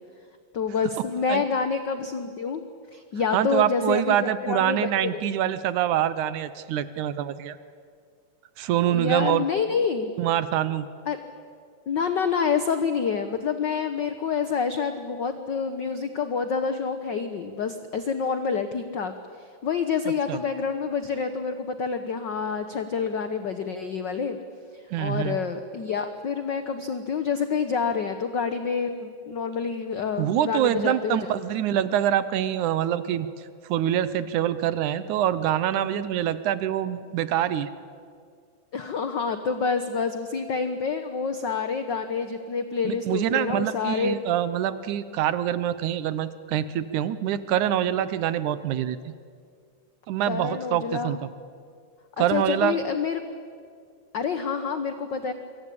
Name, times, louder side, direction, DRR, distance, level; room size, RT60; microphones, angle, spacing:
voice 1, 0.5-2.6 2.9-4.2 4.4-5.4 8.9-10.1 11.0-11.2 11.9-24.4 24.7-31.2 38.7-44.2 50.3-51.2 52.2-53.2 54.1-55.3, left 5 dB, 60° left, 8 dB, 1.2 m, -28 dB
voice 2, 3.3-7.6 8.6-9.4 10.2-10.9 20.3-20.4 24.9-25.4 30.2-33.3 33.7-37.7 42.8-49.1 50.1-51.2 52.2-52.8, right 11 dB, 85° right, 14 dB, 2.3 m, -25 dB
26.0 x 24.0 x 8.6 m, 2.2 s
omnidirectional pair, 3.4 m